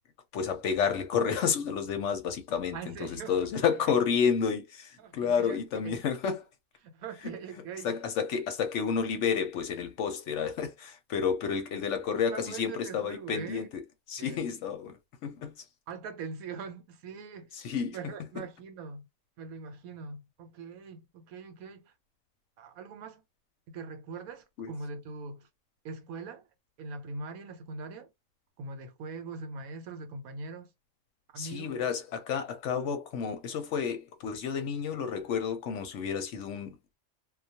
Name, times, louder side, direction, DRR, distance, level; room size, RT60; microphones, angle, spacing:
voice 1, 0.3-6.4 7.2-7.3 7.8-13.8 14.1-15.5 17.5-18.0 18.4-18.5 24.6-24.7 31.4-37.0, left 6 dB, 65° left, 0.8 m, -30 dB
voice 2, 2.7-3.4 5.0-6.0 6.8-8.0 8.3-8.4 12.3-13.7 14.2-14.4 15.9-17.5 17.9-19.1 19.4-21.9 22.6-23.2 23.7-25.5 25.8-26.5 26.8-28.1 28.6-30.7 31.3-31.7, right 4 dB, 80° right, 1.1 m, -42 dB
2.3 x 2.2 x 2.7 m
omnidirectional pair, 1.5 m